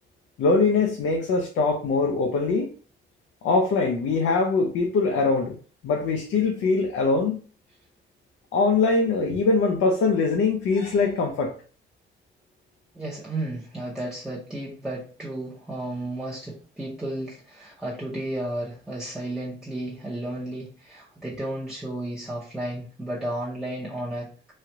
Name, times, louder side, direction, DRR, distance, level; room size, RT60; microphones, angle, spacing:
voice 1, 0.4-2.7 3.4-5.6 5.8-7.4 8.5-11.6, left 4 dB, 75° left, 0.6 m, -22 dB
voice 2, 12.9-24.5, right 1 dB, 5° right, 0.8 m, -33 dB
3.2 x 2.4 x 2.8 m
cardioid pair, 90°, 20 cm